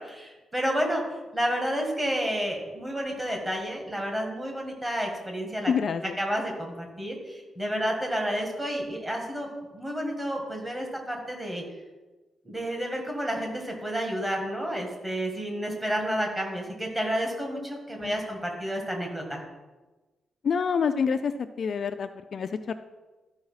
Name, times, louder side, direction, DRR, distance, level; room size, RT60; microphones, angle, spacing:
voice 1, 0.0-5.7 6.0-9.5 9.7-11.6 12.4-19.4, equal, 15° right, 1 dB, 1.7 m, -30 dB
voice 2, 5.7-6.1 18.0-18.1 20.4-21.3 21.6-22.7, left 6 dB, 40° left, 9 dB, 0.3 m, -27 dB
13.0 x 4.7 x 5.6 m, 1.2 s
wide cardioid pair, 175°, 0 cm